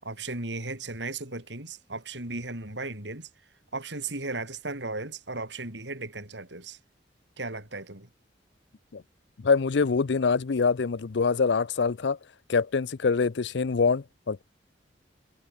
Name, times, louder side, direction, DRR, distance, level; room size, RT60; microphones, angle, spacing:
voice 1, 0.0-3.3 3.7-6.8 7.4-8.1, right 3 dB, 75° right, 6.2 m, -36 dB
voice 2, 9.4-12.2 12.5-14.4, left 5 dB, 70° left, 0.5 m, -25 dB
head